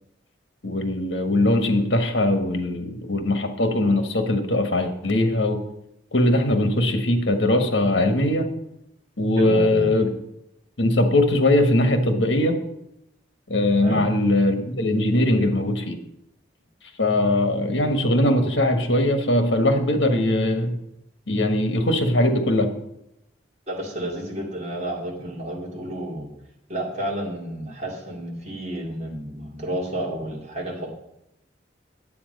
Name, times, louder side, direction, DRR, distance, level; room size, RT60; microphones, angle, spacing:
voice 1, 0.6-5.6 6.1-8.5 9.2-10.1 10.8-12.6 13.5-16.0 17.0-20.8 21.3-22.7, left 1 dB, 75° left, 7 dB, 1.3 m, -21 dB
voice 2, 9.4-9.9 13.8-14.0 23.7-26.3 26.7-30.9, right 1 dB, 35° right, -2 dB, 2.3 m, -31 dB
8.8 x 8.1 x 5.3 m, 0.81 s
head